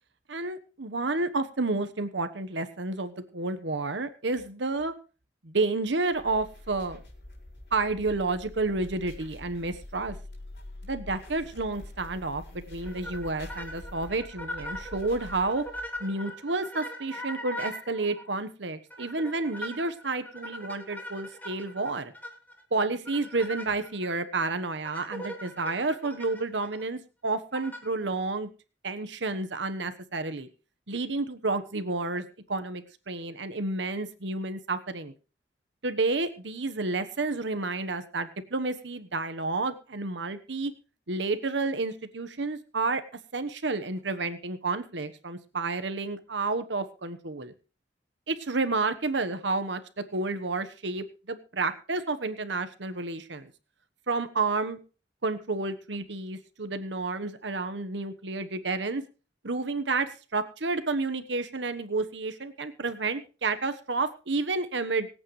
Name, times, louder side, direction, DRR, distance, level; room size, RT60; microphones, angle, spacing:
voice 1, 0.3-4.9 5.4-7.0 7.7-10.1 10.8-15.6 16.0-22.1 22.7-28.5 28.8-30.5 30.9-35.1 35.8-40.7 41.1-43.0 43.3-47.5 48.3-53.5 54.1-54.8 55.2-59.0 59.4-65.1, right 3 dB, 80° right, 9 dB, 1.2 m, -30 dB
sound 1, 6.1-16.0, left 1 dB, 70° left, 5.8 m, -45 dB
sound 2, 12.8-18.3 18.9-22.6 23.0-24.1 24.8-26.8 27.5-28.0, equal, 10° left, 3.3 m, -40 dB
25.0 x 8.7 x 3.2 m, 0.35 s
head